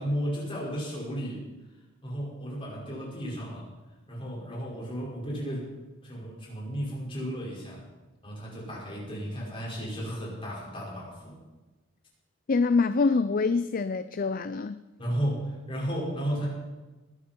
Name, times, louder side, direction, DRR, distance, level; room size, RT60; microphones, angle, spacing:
voice 1, 0.0-1.4 2.0-3.7 4.1-5.7 6.0-7.8 8.2-11.4 15.0-16.5, equal, 25° left, -4 dB, 5.5 m, -34 dB
voice 2, 12.5-14.8, left 4 dB, 45° left, 13 dB, 0.4 m, -25 dB
20.5 x 11.5 x 4.6 m, 1.1 s
head